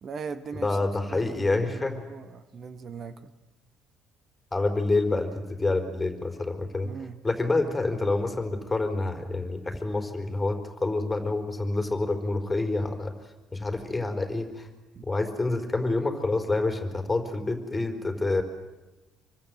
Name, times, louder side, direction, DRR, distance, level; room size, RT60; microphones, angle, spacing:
voice 1, 0.0-3.3 6.8-7.2 14.9-15.0, right 5 dB, 45° right, 12 dB, 1.6 m, -40 dB
voice 2, 0.5-2.0 4.5-6.9 7.2-13.1 13.5-14.7 15.0-18.4, left 2 dB, 15° left, 6 dB, 4.7 m, -27 dB
25.0 x 24.5 x 7.9 m, 1.1 s
figure-of-eight pair, 50°, 0 cm